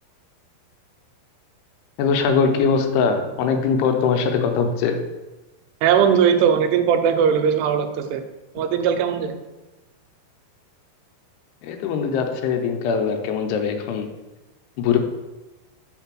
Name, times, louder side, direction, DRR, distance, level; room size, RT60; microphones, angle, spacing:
voice 1, 2.0-5.0 11.6-14.1 14.8-15.0, left 6 dB, 85° left, 5 dB, 2.7 m, -21 dB
voice 2, 5.8-8.2 8.6-9.4, right 7 dB, 85° right, 7 dB, 2.7 m, -19 dB
5.7 x 3.7 x 6.0 m, 1.1 s
omnidirectional pair, 4.7 m